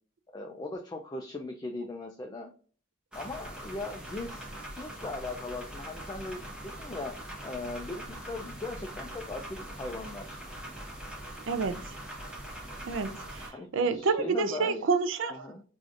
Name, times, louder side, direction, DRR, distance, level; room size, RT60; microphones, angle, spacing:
voice 1, 0.3-2.5 3.1-4.5 4.7-7.2 7.4-10.4 13.5-14.9 15.3-15.6, left 2 dB, 20° left, 0.3 m, -39 dB
sound 1, 3.1-13.5, right 1 dB, 5° right, 0.8 m, -42 dB
voice 2, 11.5-11.8 12.9-15.4, right 4 dB, 65° right, 0.4 m, -29 dB
4.8 x 2.6 x 2.5 m
head